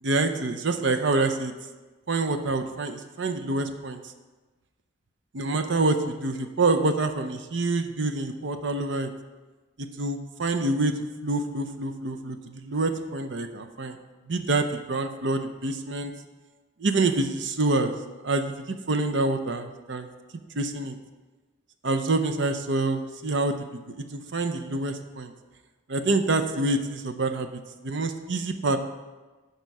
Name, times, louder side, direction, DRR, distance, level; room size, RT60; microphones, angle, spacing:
voice 1, 0.0-1.5 2.1-4.1 5.3-9.1 9.8-10.9 11.2-14.0 14.3-16.1 16.8-17.9 18.2-20.1 20.5-21.0 21.8-25.3 25.9-28.8, right 2 dB, 60° right, 7 dB, 0.7 m, -27 dB
10.5 x 5.6 x 4.8 m, 1.2 s
head